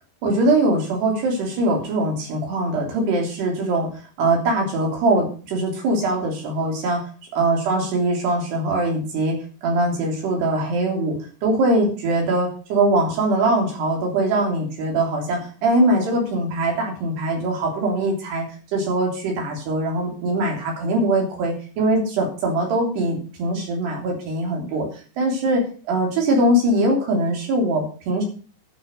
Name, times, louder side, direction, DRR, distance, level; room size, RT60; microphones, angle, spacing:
voice 1, 0.2-3.9 4.2-7.0 7.3-11.2 11.4-18.5 18.7-24.9 25.2-28.2, right 1 dB, 70° right, 0 dB, 5.4 m, -22 dB
11.0 x 6.9 x 6.7 m, 0.39 s
omnidirectional pair, 4.9 m